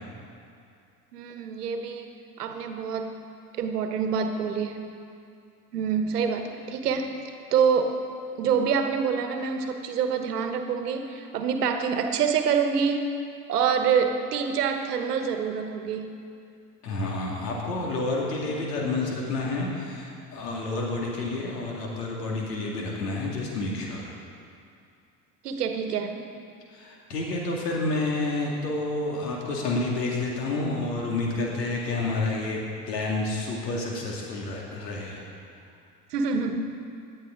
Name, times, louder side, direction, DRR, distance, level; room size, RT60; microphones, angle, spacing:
voice 1, 1.1-2.1 2.4-3.1 3.6-4.9 5.7-7.1 7.5-8.0 8.4-13.1 13.5-16.2 25.4-26.3 36.1-36.7, right 6 dB, 70° right, 6 dB, 1.3 m, -26 dB
voice 2, 16.8-24.0 26.7-32.6 32.9-35.2, left 2 dB, 75° left, -2 dB, 2.4 m, -29 dB
18.0 x 11.5 x 3.8 m, 2.5 s
figure-of-eight pair, 70°, 48 cm